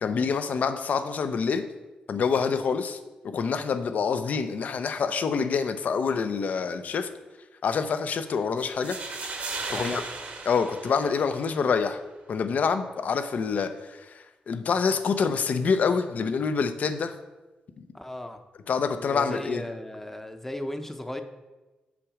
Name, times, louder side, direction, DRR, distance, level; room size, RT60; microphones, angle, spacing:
voice 1, 0.0-1.6 2.1-3.0 3.2-7.1 7.6-9.0 9.7-10.0 10.5-12.0 12.3-17.1 17.8-17.9 18.7-19.6, left 5 dB, 65° left, 10 dB, 0.6 m, -26 dB
sound 1, 8.6-11.6, right 3 dB, 65° right, 1.3 m, -36 dB
voice 2, 9.7-10.0 17.9-18.4 19.0-21.2, left 1 dB, 10° left, 7 dB, 0.7 m, -36 dB
6.2 x 6.0 x 4.8 m, 1.1 s
cardioid pair, 75°, 3 cm